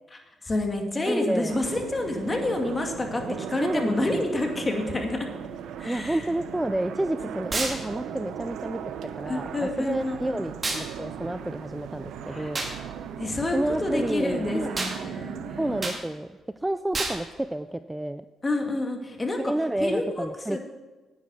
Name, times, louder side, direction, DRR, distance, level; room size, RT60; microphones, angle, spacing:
voice 1, 0.4-3.2 3.5-5.3 5.8-6.2 9.3-10.4 12.3-12.5 13.2-15.7 18.4-19.4 19.8-20.6, left 2 dB, 25° left, 3 dB, 2.1 m, -28 dB
voice 2, 1.1-1.5 3.6-4.2 5.8-12.6 13.5-14.7 15.6-16.3 16.6-18.3 19.4-20.6, right 1 dB, 10° right, 11 dB, 0.4 m, -30 dB
sound 1, 1.5-16.0, right 8 dB, 80° right, 0.7 m, -38 dB
sound 2, 7.5-7.8 10.6-10.9 12.5-12.7 14.8-15.0 15.8-16.0 16.9-17.2, right 2 dB, 30° right, 2.1 m, -28 dB
9.6 x 9.5 x 6.3 m, 1.3 s
cardioid pair, 90°, 0 cm